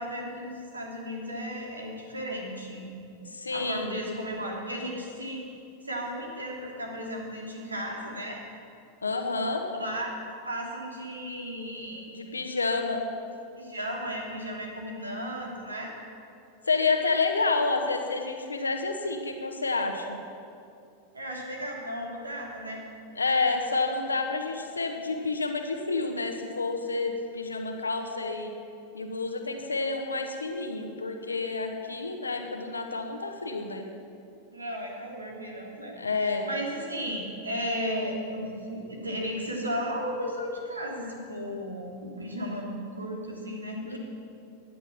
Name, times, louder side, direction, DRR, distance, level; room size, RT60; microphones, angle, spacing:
voice 1, 0.0-2.9 3.5-5.4 5.8-8.4 9.8-10.1 10.4-12.1 13.6-15.9 21.1-22.8 34.5-44.0, equal, 80° right, -1 dB, 2.9 m, -35 dB
voice 2, 3.2-4.0 9.0-9.7 12.1-13.0 16.7-20.2 23.2-28.5 28.9-33.8 35.9-36.5 43.8-44.0, left 3 dB, 75° left, 5 dB, 1.4 m, -29 dB
17.0 x 11.5 x 5.9 m, 2.5 s
figure-of-eight pair, 90°, 0 cm